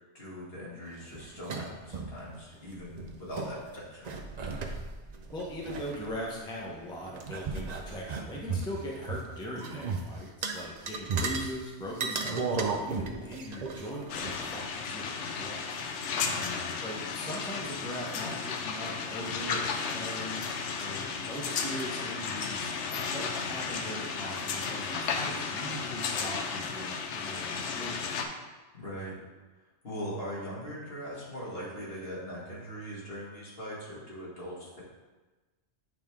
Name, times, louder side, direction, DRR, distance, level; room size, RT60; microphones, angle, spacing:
voice 1, 0.1-4.1 16.2-16.6 28.7-29.2 29.8-34.8, equal, 55° left, -7 dB, 2.1 m, -40 dB
sound 1, 1.0-2.2 2.5-2.6 2.9-3.5 4.0-6.6 7.1-9.2 9.6-10.0 10.4-11.5 11.9-14.6, right 4 dB, 50° right, 0.5 m, -35 dB
voice 2, 5.3-15.8 16.8-22.7 23.1-28.3, equal, 5° left, -3 dB, 0.7 m, -40 dB
sound 2, 14.1-28.2, left 5 dB, 80° left, 0.9 m, -34 dB
8.7 x 3.4 x 3.5 m, 1.2 s
omnidirectional pair, 1.2 m